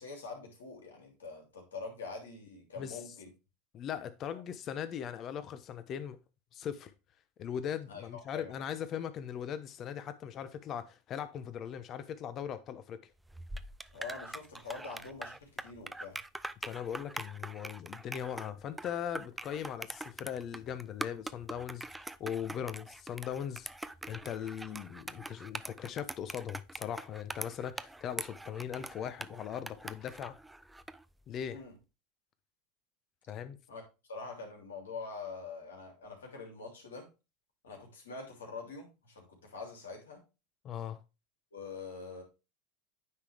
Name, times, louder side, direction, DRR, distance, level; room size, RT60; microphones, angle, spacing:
voice 1, 0.0-3.3 4.3-4.4 7.9-8.5 13.9-16.2 31.5-31.7 33.7-33.8 34.1-37.1 37.6-40.2 41.5-42.2, left 4 dB, 85° left, 3.1 m, -45 dB
voice 2, 3.7-6.2 6.5-6.9 7.4-13.0 16.6-23.7 24.1-30.4 31.3-31.6 33.3-33.6 40.6-41.0, left 9 dB, 40° left, 0.9 m, -39 dB
sound 1, 13.3-31.0, right 2 dB, 10° right, 0.4 m, -43 dB
9.6 x 3.9 x 3.5 m
hypercardioid pair, 95°, 0 cm